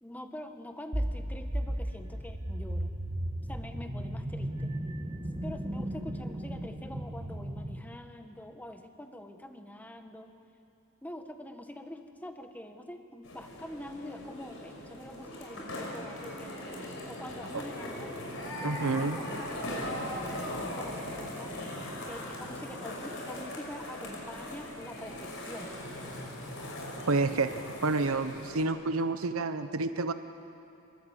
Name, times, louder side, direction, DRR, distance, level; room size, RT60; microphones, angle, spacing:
voice 1, 0.0-3.0 3.5-4.7 5.4-10.3 11.0-18.1 18.6-21.5 22.1-25.8, left 1 dB, 5° left, 6 dB, 1.3 m, -45 dB
sound 1, 0.9-7.8, right 1 dB, 25° right, 1.6 m, -35 dB
sound 2, 13.2-28.6, left 1 dB, 60° left, 5.8 m, -39 dB
voice 2, 18.6-19.2 27.1-30.1, right 3 dB, 70° right, 9 dB, 0.9 m, -29 dB
26.0 x 22.0 x 8.8 m, 2.8 s
head